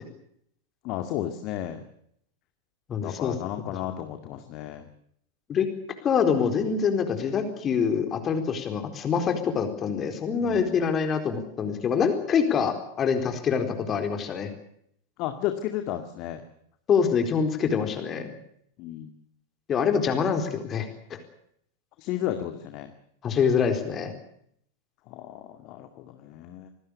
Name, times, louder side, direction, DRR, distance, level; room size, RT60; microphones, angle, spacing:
voice 1, 0.8-1.8 3.0-4.9 10.4-10.8 15.2-16.4 18.8-19.1 22.0-22.9 25.1-26.7, left 12 dB, 40° left, 7 dB, 2.2 m, -33 dB
voice 2, 2.9-3.3 5.5-5.7 6.0-14.5 16.9-18.3 19.7-21.2 23.2-24.1, left 6 dB, 25° left, 6 dB, 4.3 m, -25 dB
27.0 x 19.5 x 6.9 m, 0.70 s
figure-of-eight pair, 90°, 0 cm